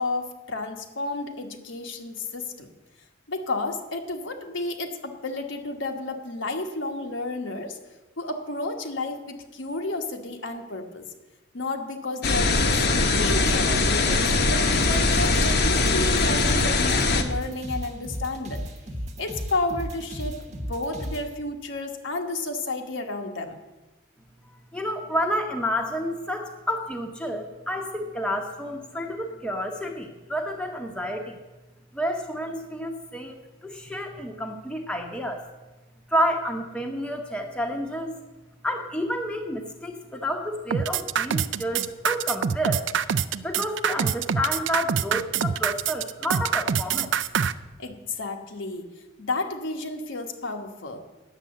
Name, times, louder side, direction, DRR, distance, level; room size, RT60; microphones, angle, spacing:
voice 1, 0.0-2.7 3.3-7.8 8.2-11.0 11.5-18.7 19.2-23.6 47.8-51.0, left 2 dB, 70° left, 3 dB, 1.3 m, -31 dB
sound 1, 12.2-17.2, left 3 dB, 55° left, 1.0 m, -21 dB
sound 2, 14.7-21.2, equal, 35° right, 1.1 m, -34 dB
voice 2, 24.7-31.4 31.9-35.4 36.1-38.2 38.6-42.9 43.4-47.1, equal, 5° left, 2 dB, 0.9 m, -30 dB
sound 3, 40.7-47.5, right 7 dB, 65° right, 0.4 m, -25 dB
9.9 x 7.5 x 7.6 m, 1.1 s
head